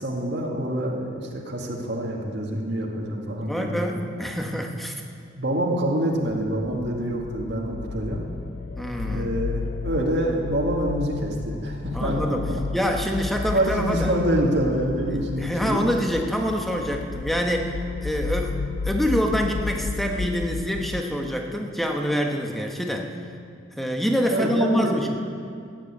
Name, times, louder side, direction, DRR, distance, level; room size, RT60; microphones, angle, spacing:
voice 1, 0.0-3.8 5.3-8.3 9.0-12.6 13.5-15.8 24.3-25.0, right 1 dB, 60° right, -1 dB, 2.2 m, -26 dB
voice 2, 3.4-5.0 8.8-9.3 11.9-12.5 12.7-14.1 15.1-17.7 18.0-18.6 18.8-23.1 23.8-25.1, equal, ahead, 2 dB, 1.2 m, -26 dB
sound 1, 6.5-21.0, left 4 dB, 60° left, 0.4 m, -33 dB
15.0 x 9.9 x 8.3 m, 2.3 s
head